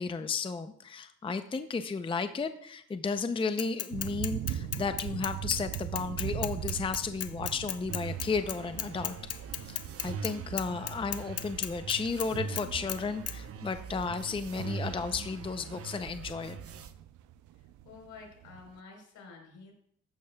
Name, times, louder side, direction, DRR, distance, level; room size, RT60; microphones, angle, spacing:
voice 1, 0.0-9.2 9.7-16.6, left 5 dB, 15° left, 9 dB, 0.5 m, -33 dB
Bicycle / Mechanisms, 3.6-10.3 10.6-12.3 12.6-13.0 13.3-13.4, left 10 dB, 55° left, 0.8 m, -35 dB
sound 1, 3.9-18.8, right 12 dB, 80° right, 0.5 m, -42 dB
sound 2, 7.9-16.9, right 6 dB, 50° right, 0.8 m, -41 dB
voice 2, 17.6-19.7, left 4 dB, 70° left, 1 dB, 4.0 m, -50 dB
14.5 x 10.5 x 2.3 m, 0.66 s
cardioid pair, 90°, 30 cm